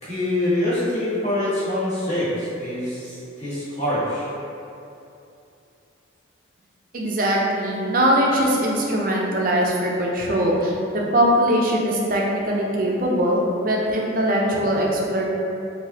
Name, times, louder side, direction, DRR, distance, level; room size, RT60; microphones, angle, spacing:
voice 1, 0.0-4.3, left 1 dB, 35° left, -13 dB, 1.4 m, -25 dB
voice 2, 6.9-15.2, equal, 45° right, -2 dB, 0.5 m, -21 dB
4.9 x 2.7 x 2.8 m, 2.7 s
head